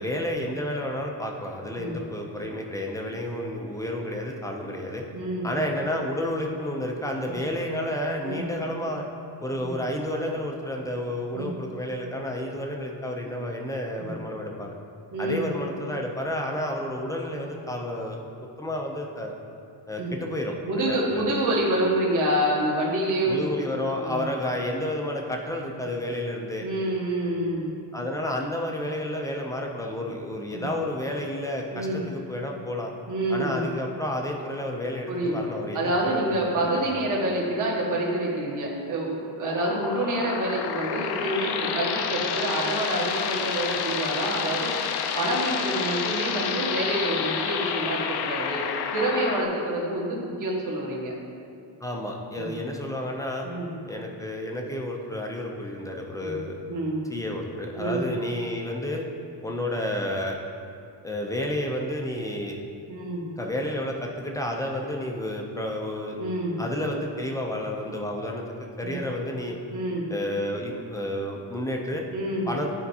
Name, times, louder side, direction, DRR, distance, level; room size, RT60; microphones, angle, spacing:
voice 1, 0.0-5.0 5.4-9.0 9.4-14.7 15.2-18.2 18.6-19.3 19.9-21.3 23.2-26.7 27.9-32.9 33.3-36.9 51.8-53.5 53.9-56.6 57.1-59.0 59.4-60.4 61.0-62.6 63.4-66.2 66.6-69.6 70.1-72.1 72.5-72.7, left 1 dB, 10° left, 0 dB, 0.4 m, -31 dB
voice 2, 5.1-5.6 7.3-7.4 8.2-8.4 9.6-9.7 11.3-11.5 14.0-14.1 15.1-15.5 20.0-20.1 20.7-23.5 24.0-24.2 26.6-27.7 30.5-30.7 31.7-32.0 33.1-33.7 35.1-35.4 35.7-44.7 45.1-48.6 48.9-51.1 52.4-52.5 53.4-53.7 56.2-56.4 56.7-57.1 57.7-58.0 62.9-63.3 66.2-66.6 68.8-69.0 69.7-70.0 72.1-72.5, right 1 dB, 45° right, -4 dB, 1.4 m, -27 dB
sound 1, 39.4-49.4, left 7 dB, 60° left, 0.5 m, -29 dB
12.0 x 4.4 x 2.8 m, 2.5 s
cardioid pair, 155°, 45 cm